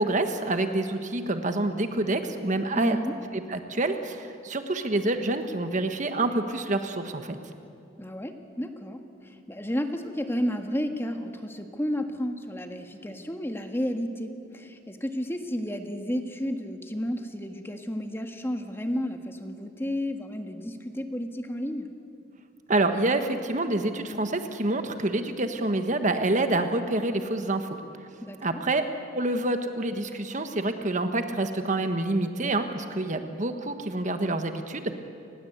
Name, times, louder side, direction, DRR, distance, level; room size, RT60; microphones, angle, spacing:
voice 1, 0.0-3.0 3.3-7.4 22.7-27.7 28.4-28.8 29.1-35.0, right 2 dB, 40° right, 7 dB, 1.4 m, -27 dB
voice 2, 2.7-3.1 8.0-21.9 28.2-28.6, equal, 15° left, 5 dB, 1.6 m, -32 dB
29.5 x 20.0 x 8.1 m, 2.6 s
head